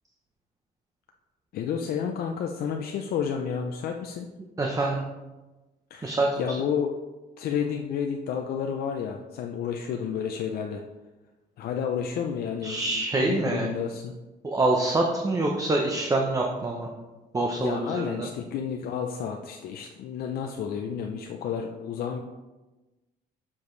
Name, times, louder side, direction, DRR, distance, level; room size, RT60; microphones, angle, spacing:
voice 1, 1.5-4.3 5.9-6.9 7.4-10.8 11.6-14.2 17.6-22.2, left 7 dB, 65° left, 3 dB, 0.6 m, -31 dB
voice 2, 4.6-5.0 6.0-6.6 12.6-13.7 14.4-16.9 17.3-18.3, right 2 dB, 20° right, 0 dB, 0.8 m, -26 dB
7.1 x 7.0 x 3.2 m, 1.1 s
cardioid pair, 110°, 17 cm